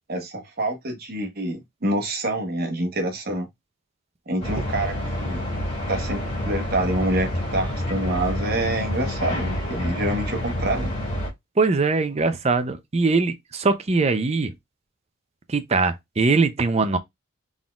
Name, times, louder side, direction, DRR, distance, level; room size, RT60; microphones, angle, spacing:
voice 1, 0.1-3.5 4.3-5.5 5.9-10.9, right 1 dB, 50° right, 1.1 m, -27 dB
sound 1, 4.4-11.3, left 1 dB, 30° left, 2.4 m, -28 dB
voice 2, 11.6-14.5 15.5-17.0, right 3 dB, 30° right, 0.5 m, -21 dB
4.0 x 3.7 x 2.3 m
head